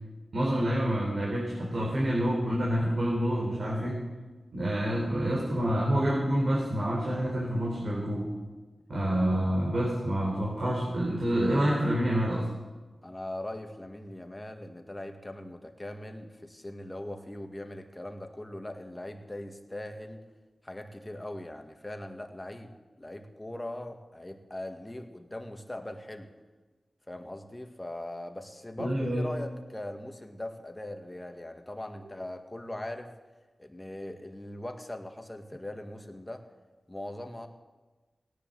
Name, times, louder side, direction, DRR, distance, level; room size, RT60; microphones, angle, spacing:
voice 1, 0.3-4.0 4.5-8.3 8.9-12.5 28.8-29.3 32.0-32.1, equal, 65° right, -3 dB, 4.1 m, -27 dB
voice 2, 13.0-20.2 20.6-22.7 23.0-26.3 27.1-33.1 33.6-36.5 36.9-37.5, left 1 dB, 20° left, 5 dB, 2.0 m, -40 dB
17.0 x 10.5 x 7.9 m, 1.2 s
cardioid pair, 45°, 0 cm